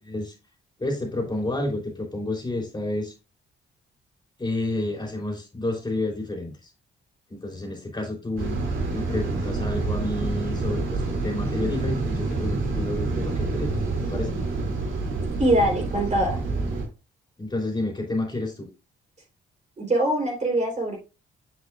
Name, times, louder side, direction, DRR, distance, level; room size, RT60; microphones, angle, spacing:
voice 1, 0.8-3.1 4.4-6.5 7.3-8.6 8.9-13.8 14.1-14.4 17.4-18.7, left 2 dB, 20° left, 3.1 m, -30 dB
sound 1, 8.4-16.8, right 3 dB, 80° right, 2.5 m, -27 dB
voice 2, 15.4-16.4 19.8-21.0, right 1 dB, 35° right, 3.3 m, -23 dB
7.6 x 6.4 x 2.3 m
cardioid pair, 90°, 20 cm